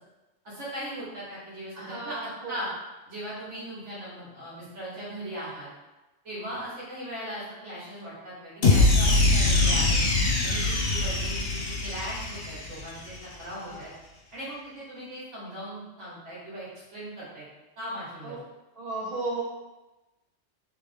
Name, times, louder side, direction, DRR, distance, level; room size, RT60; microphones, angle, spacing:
voice 1, 0.4-2.7 3.1-5.7 6.2-10.0 10.4-13.9 14.3-17.5 17.8-18.4, equal, 80° right, -8 dB, 1.8 m, -39 dB
voice 2, 1.7-2.6 13.6-13.8 18.2-18.4 18.8-19.4, right 3 dB, 55° right, -5 dB, 1.1 m, -34 dB
sound 1, 8.6-13.0, left 2 dB, 60° left, 0.9 m, -23 dB
3.2 x 3.2 x 3.5 m, 1.1 s
omnidirectional pair, 1.2 m